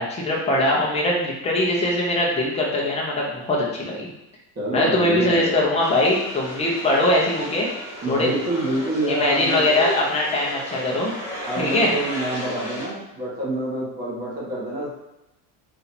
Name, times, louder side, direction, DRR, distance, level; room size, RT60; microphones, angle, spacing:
voice 1, 0.1-4.1 4.7-7.7 8.1-8.3 9.1-11.1 11.6-11.9, left 1 dB, 15° left, -3 dB, 0.9 m, -21 dB
voice 2, 4.5-5.7 8.0-10.0 11.4-14.9, right 1 dB, 25° right, -7 dB, 1.4 m, -27 dB
sound 1, 5.8-12.9, equal, 5° right, 1.2 m, -35 dB
4.0 x 2.8 x 4.3 m, 0.89 s
cardioid pair, 170°, 37 cm